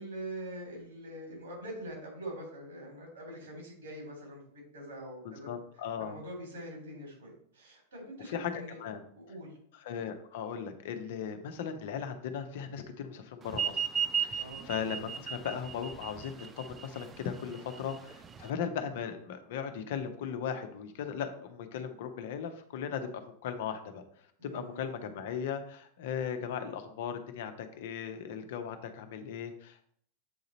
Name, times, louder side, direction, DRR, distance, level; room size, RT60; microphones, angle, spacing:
voice 1, 0.0-5.5 6.0-8.8 9.2-9.6 14.4-14.6 24.4-25.1, right 1 dB, 65° right, 0 dB, 3.1 m, -44 dB
voice 2, 5.2-6.2 8.3-9.0 9.7-13.9 14.2-23.1 23.4-24.0 24.4-29.9, left 7 dB, 55° left, 7 dB, 0.7 m, -37 dB
sound 1, 13.5-18.5, right 8 dB, 20° right, 0.5 m, -35 dB
7.8 x 3.9 x 4.1 m, 0.63 s
figure-of-eight pair, 90°, 0 cm